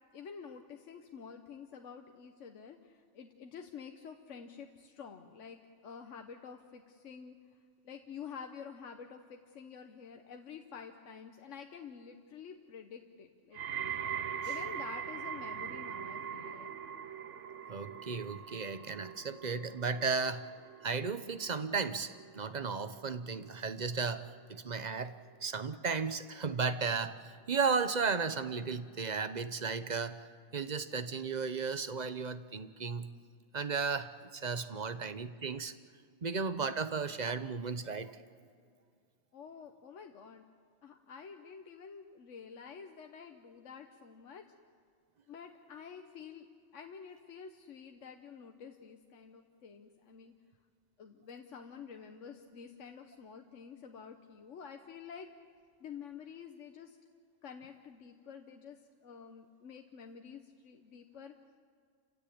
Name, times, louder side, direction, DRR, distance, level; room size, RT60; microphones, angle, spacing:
voice 1, 0.1-7.4 7.8-13.6 14.4-16.7 34.7-34.9 39.3-40.4 40.8-44.5 45.3-46.5 46.7-50.3 51.0-55.3 55.8-57.0 57.4-61.3, left 6 dB, 80° left, 5 dB, 1.3 m, -49 dB
sound 1, 13.5-24.7 25.0-25.5 26.2-26.3, right 8 dB, 80° right, 1.2 m, -42 dB
voice 2, 17.7-20.4 20.8-24.2 24.5-25.1 25.4-33.1 33.5-35.7 36.2-38.1, right 5 dB, 40° right, 12 dB, 0.9 m, -35 dB
29.0 x 16.0 x 8.6 m, 2.2 s
omnidirectional pair, 1.3 m